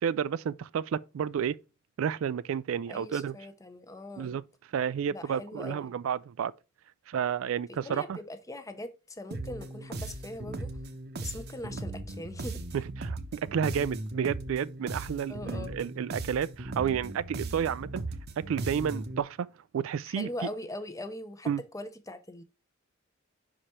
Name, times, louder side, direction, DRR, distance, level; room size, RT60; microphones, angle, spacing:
voice 1, 0.0-1.6 2.0-3.4 4.2-4.4 4.7-6.5 7.1-8.2 12.7-18.0 18.4-19.5 19.7-20.3 21.5-21.6, right 8 dB, 70° right, 0.3 m, -31 dB
voice 2, 2.9-4.3 5.1-5.9 7.8-10.7 11.2-12.6 15.3-15.8 20.1-22.4, left 1 dB, 15° left, 0.8 m, -41 dB
sound 1, 9.3-19.2, right 2 dB, 50° right, 0.8 m, -38 dB
5.7 x 5.0 x 4.2 m
head